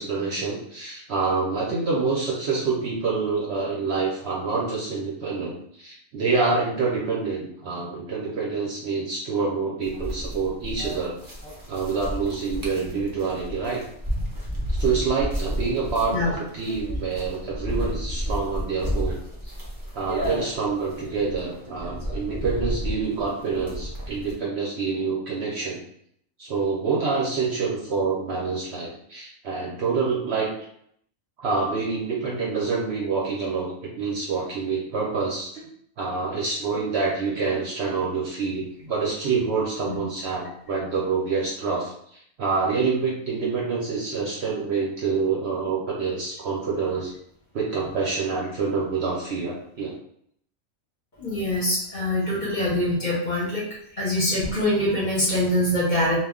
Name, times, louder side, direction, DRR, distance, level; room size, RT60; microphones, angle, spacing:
voice 1, 0.0-11.2 11.7-13.8 14.7-19.2 19.4-19.5 19.9-25.8 26.4-30.5 31.4-35.7 36.0-41.9 42.4-47.1 47.5-49.9, right 4 dB, 65° right, -3 dB, 0.7 m, -27 dB
sound 1, 9.8-24.3, equal, 35° right, 0.3 m, -32 dB
voice 2, 51.2-53.6 54.0-56.3, left 1 dB, 40° left, -6 dB, 0.8 m, -24 dB
2.3 x 2.1 x 3.5 m, 0.69 s
omnidirectional pair, 1.4 m